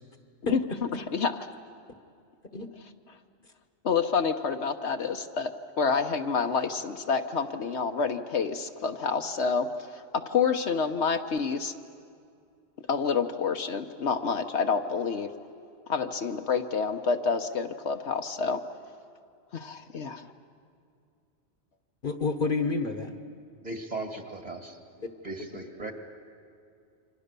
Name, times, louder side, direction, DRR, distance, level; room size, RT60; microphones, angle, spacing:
voice 1, 3.8-5.5 5.8-11.7 12.9-15.3 15.9-18.6 19.5-20.3, left 5 dB, 65° left, 6 dB, 1.2 m, -28 dB
voice 2, 22.0-23.2 25.0-25.1, left 4 dB, 45° left, 7 dB, 1.3 m, -29 dB
voice 3, 23.6-24.8 25.2-25.9, right 2 dB, 35° right, 5 dB, 2.2 m, -37 dB
28.5 x 25.0 x 6.8 m, 2.3 s
omnidirectional pair, 1.2 m